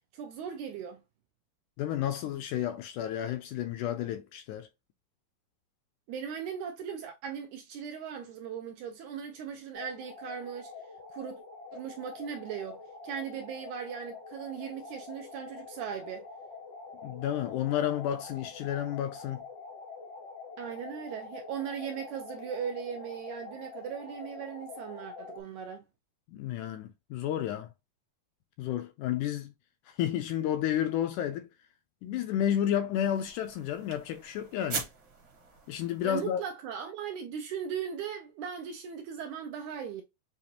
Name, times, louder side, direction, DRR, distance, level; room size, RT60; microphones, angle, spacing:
voice 1, 0.1-1.0 6.1-10.7 11.1-11.4 11.7-16.3 20.6-25.9 36.0-40.0, right 8 dB, 80° right, 1.8 m, -38 dB
voice 2, 1.8-4.7 17.0-19.4 26.3-27.7 28.6-29.5 29.9-31.5 32.0-34.9 35.7-36.4, left 10 dB, 80° left, 1.8 m, -31 dB
sound 1, 9.7-25.4, left 4 dB, 65° left, 0.9 m, -46 dB
sound 2, 32.9-36.5, right 4 dB, 55° right, 1.3 m, -42 dB
7.0 x 2.5 x 2.8 m
omnidirectional pair, 3.9 m